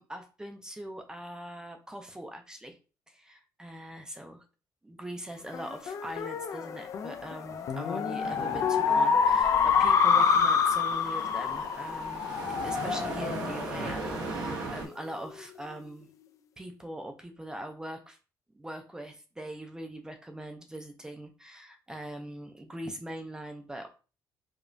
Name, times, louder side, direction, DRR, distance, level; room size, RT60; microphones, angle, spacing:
voice 1, 0.0-2.8 3.1-4.4 4.8-16.1 16.6-18.2 18.5-23.9, right 1 dB, 10° right, 4 dB, 0.5 m, -42 dB
sound 1, 5.5-14.4, left 6 dB, 50° left, 0.4 m, -27 dB
sound 2, 8.2-14.9, right 3 dB, 80° right, 0.9 m, -38 dB
4.9 x 2.3 x 2.6 m, 0.34 s
cardioid pair, 135°, 7 cm